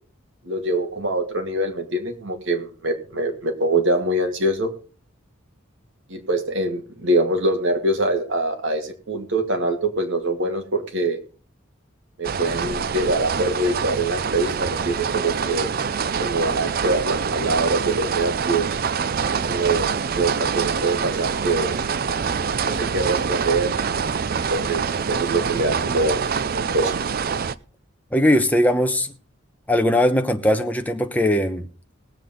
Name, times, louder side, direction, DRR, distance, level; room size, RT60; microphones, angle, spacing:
voice 1, 0.4-4.7 6.1-11.2 12.2-15.7 16.2-18.8 19.5-21.8 22.6-23.8 24.5-26.9, right 2 dB, 70° right, 2.3 m, -24 dB
sound 1, 12.2-27.5, right 6 dB, 45° right, 0.5 m, -25 dB
voice 2, 28.1-29.1 29.7-31.6, left 1 dB, 10° left, 1.1 m, -19 dB
19.5 x 7.6 x 3.8 m
head